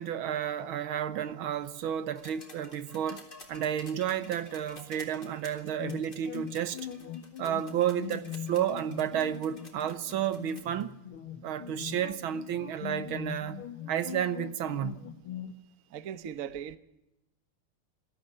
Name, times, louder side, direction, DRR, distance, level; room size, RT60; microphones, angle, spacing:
voice 1, 0.0-6.8 7.4-10.9 11.4-15.1, right 10 dB, 75° right, 1.8 m, -32 dB
sound 1, 2.2-10.8 12.0-12.1, left 2 dB, 25° left, 3.6 m, -51 dB
sound 2, 5.8-15.5, left 10 dB, 75° left, 2.0 m, -41 dB
voice 2, 15.9-16.8, right 9 dB, 50° right, 1.1 m, -38 dB
21.5 x 13.5 x 9.6 m
omnidirectional pair, 2.3 m